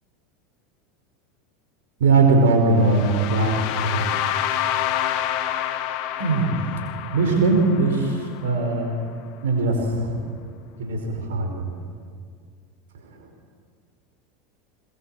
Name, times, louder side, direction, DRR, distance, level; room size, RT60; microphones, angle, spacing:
voice 1, 2.0-4.0 6.2-6.6 7.1-9.0 9.4-10.3 10.8-11.7 13.0-13.3, right 3 dB, 65° right, 3 dB, 5.2 m, -21 dB
sound 1, 2.8-8.7, left 11 dB, 50° left, 1.4 m, -28 dB
22.0 x 22.0 x 7.9 m, 2.1 s
figure-of-eight pair, 80°, 0 cm